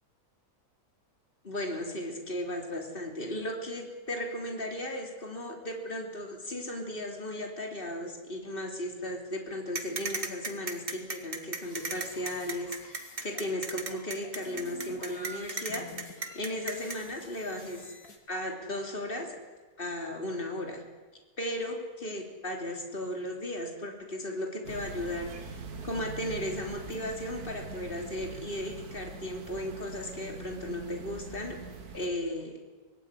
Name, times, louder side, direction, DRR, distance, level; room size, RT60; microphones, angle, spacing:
voice 1, 1.4-17.9 18.3-19.4 19.8-20.8 21.4-31.6 31.9-32.6, left 1 dB, 35° left, 2 dB, 3.6 m, -36 dB
sound 1, 9.7-17.0, right 3 dB, 35° right, 2.3 m, -35 dB
sound 2, 11.6-13.5 13.9-18.2, left 2 dB, 85° left, 3.4 m, -49 dB
sound 3, 24.6-32.1, right 4 dB, 85° right, 2.2 m, -43 dB
25.0 x 19.5 x 9.9 m, 1.3 s
omnidirectional pair, 1.6 m